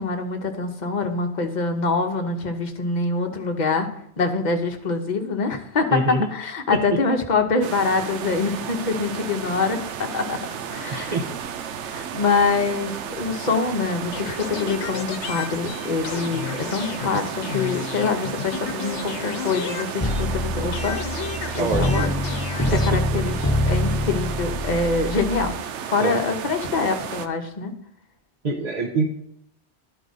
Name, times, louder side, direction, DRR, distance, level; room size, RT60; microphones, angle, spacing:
voice 1, 0.0-3.9 4.2-10.4 10.7-11.2 11.8-21.0 21.6-22.1 22.7-25.5 25.8-27.7, left 4 dB, 45° left, 5 dB, 1.0 m, -25 dB
voice 2, 5.9-6.3 6.7-7.0 10.9-11.3 21.5-22.1 22.7-23.0 26.0-26.2 28.4-29.1, right 2 dB, 40° right, 0 dB, 0.9 m, -25 dB
sound 1, 7.6-27.3, right 8 dB, 85° right, 1.0 m, -33 dB
sound 2, 14.1-20.4 20.7-22.9, left 7 dB, 80° left, 1.0 m, -33 dB
sound 3, 20.0-25.5, left 1 dB, 15° left, 1.2 m, -25 dB
12.0 x 4.9 x 4.0 m, 0.75 s
omnidirectional pair, 1.2 m